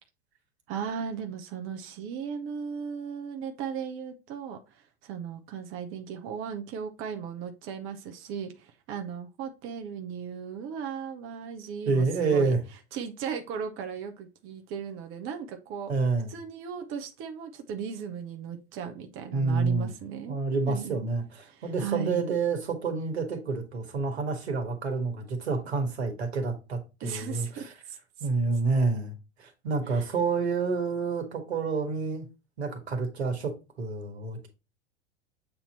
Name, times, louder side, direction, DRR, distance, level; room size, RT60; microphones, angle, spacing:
voice 1, 0.7-12.5 12.9-15.9 16.3-20.4 20.7-21.0 21.4-22.3 27.0-28.3 29.9-30.1, right 7 dB, 40° right, 0.9 m, -37 dB
voice 2, 11.9-12.6 15.9-16.3 19.3-19.9 20.3-21.2 21.6-27.7 28.2-32.3 32.6-33.5 33.8-34.5, right 4 dB, 80° right, 1.7 m, -28 dB
7.9 x 2.9 x 4.2 m
figure-of-eight pair, 85°, 32 cm